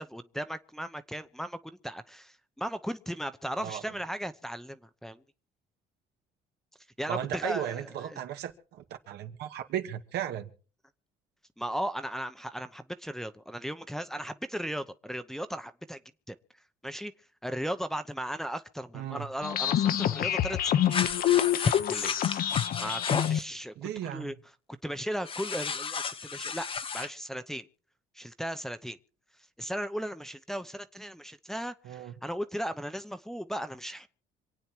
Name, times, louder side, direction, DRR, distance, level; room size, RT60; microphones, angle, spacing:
voice 1, 0.0-5.2 7.0-8.2 11.6-16.0 16.3-16.4 16.8-17.1 17.4-20.9 21.5-22.2 22.8-23.7 24.0-24.3 24.8-26.7 26.9-27.7 28.1-29.0 29.6-34.1, equal, ahead, 0.9 m, -36 dB
voice 2, 7.1-10.5 18.9-19.3 23.8-24.3 31.8-32.1, right 11 dB, 75° right, 2.0 m, -35 dB
sound 1, 19.4-23.4, left 11 dB, 60° left, 1.1 m, -26 dB
sound 2, 20.9-23.4 25.2-27.1, left 6 dB, 30° left, 1.0 m, -33 dB
26.5 x 9.0 x 4.6 m
cardioid pair, 110°, 17 cm